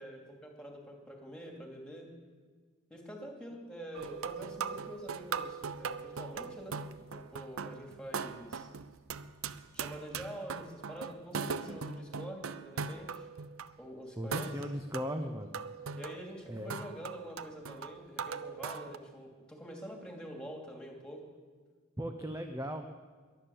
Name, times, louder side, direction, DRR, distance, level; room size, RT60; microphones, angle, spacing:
voice 1, 0.0-2.1 2.9-6.8 7.1-8.7 9.7-13.3 13.8-14.5 16.0-21.2, right 1 dB, 5° left, 1 dB, 2.6 m, -46 dB
sound 1, 3.9-13.7 14.3-19.0, right 5 dB, 75° right, 0.6 m, -40 dB
voice 2, 14.2-15.6 16.5-16.8 22.0-22.9, equal, 15° right, 6 dB, 0.8 m, -37 dB
22.0 x 9.1 x 7.1 m, 1.5 s
head